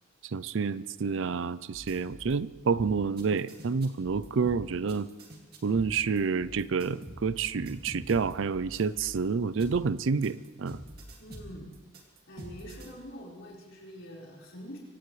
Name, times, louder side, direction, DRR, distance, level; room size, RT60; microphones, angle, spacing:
voice 1, 0.3-5.1 5.6-10.8, right 5 dB, 70° right, 17 dB, 0.5 m, -29 dB
sound 1, 1.7-2.4 2.7-9.2 9.6-12.9, right 1 dB, 50° right, 2.3 m, -46 dB
voice 2, 11.2-11.7 12.3-14.8, equal, 70° left, -4 dB, 4.7 m, -45 dB
25.0 x 17.0 x 3.2 m, 1.3 s
head